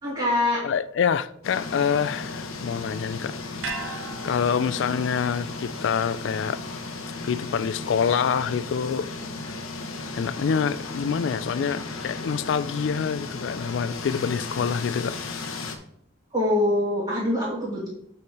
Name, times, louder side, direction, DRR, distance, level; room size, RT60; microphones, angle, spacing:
voice 1, 0.0-0.6 16.3-17.9, left 1 dB, 25° right, 1.9 m, -24 dB
voice 2, 0.6-3.4 4.2-6.6 7.3-9.1 10.1-15.2, left 6 dB, 60° left, 0.3 m, -26 dB
sound 1, 1.4-15.8, left 3 dB, 85° left, 1.0 m, -35 dB
sound 2, 3.6-8.0 8.3-8.4, right 3 dB, 65° right, 1.3 m, -40 dB
7.0 x 4.8 x 4.7 m
head